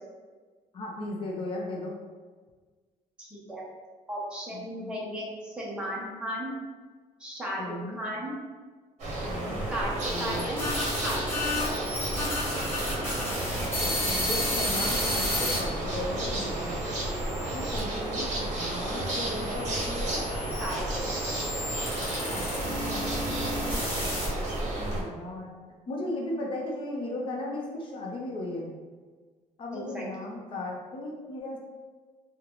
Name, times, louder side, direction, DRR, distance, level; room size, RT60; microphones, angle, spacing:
voice 1, 0.7-1.9 4.5-5.0 7.6-8.0 9.2-9.6 13.8-16.9 17.4-20.3 22.3-23.4 24.8-25.5 25.9-28.7 29.6-31.6, left 1 dB, 40° left, -2 dB, 0.6 m, -36 dB
voice 2, 3.2-3.6 4.1-6.5 7.2-8.3 9.7-11.7 20.6-21.0 29.7-30.0, equal, 5° right, -5 dB, 0.7 m, -35 dB
sound 1, 9.0-25.0, right 1 dB, 60° right, 0.8 m, -32 dB
sound 2, 9.8-15.6 16.2-17.8 18.6-24.6, left 1 dB, 15° left, 1.0 m, -32 dB
3.7 x 2.2 x 3.0 m, 1.4 s
cardioid pair, 170°, 13 cm